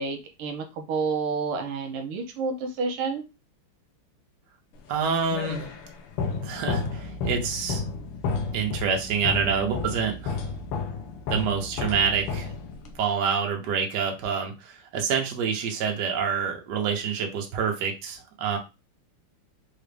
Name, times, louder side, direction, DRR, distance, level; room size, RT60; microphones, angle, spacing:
voice 1, 0.0-3.2, right 4 dB, 90° right, 4 dB, 1.7 m, -29 dB
sound 1, 4.9-13.0, left 4 dB, 85° left, 1.7 m, -32 dB
voice 2, 4.9-5.7 6.4-7.8 8.5-10.5 11.3-12.5 13.0-18.6, right 6 dB, 60° right, 2 dB, 1.4 m, -27 dB
4.9 x 2.5 x 3.3 m, 0.27 s
omnidirectional pair, 2.4 m